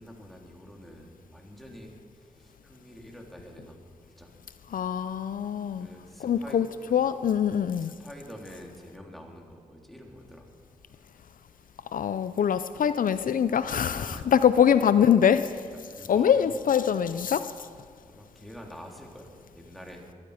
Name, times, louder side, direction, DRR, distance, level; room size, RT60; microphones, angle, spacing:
voice 1, 0.0-4.3 5.8-6.6 6.9-7.1 7.8-10.5 14.0-14.3 14.6-14.7 15.7-16.6 18.0-20.1, equal, ahead, 0 dB, 3.4 m, -47 dB
voice 2, 4.7-5.9 6.2-6.7 6.9-7.9 11.9-15.6 16.1-17.7, left 8 dB, 65° left, 13 dB, 0.5 m, -23 dB
22.0 x 13.0 x 5.0 m, 2.1 s
cardioid pair, 55°, 15 cm